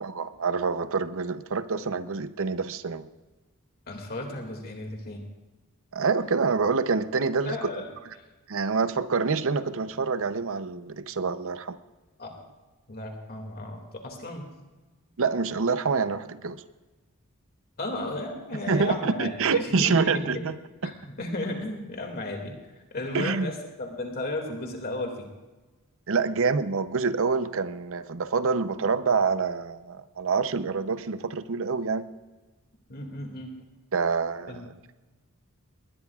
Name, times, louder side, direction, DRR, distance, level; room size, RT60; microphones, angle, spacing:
voice 1, 0.0-3.1 5.9-7.7 8.5-11.8 15.2-16.6 18.7-20.6 20.8-20.9 23.1-23.5 26.1-32.1 33.9-35.0, right 4 dB, 65° right, 12 dB, 0.7 m, -26 dB
voice 2, 3.9-5.2 7.5-7.9 12.2-12.3 12.9-14.5 17.8-20.5 20.8-22.5 22.9-25.3 32.9-33.6 34.5-34.7, left 2 dB, 45° left, 2 dB, 2.3 m, -34 dB
20.5 x 20.0 x 2.4 m, 1.2 s
head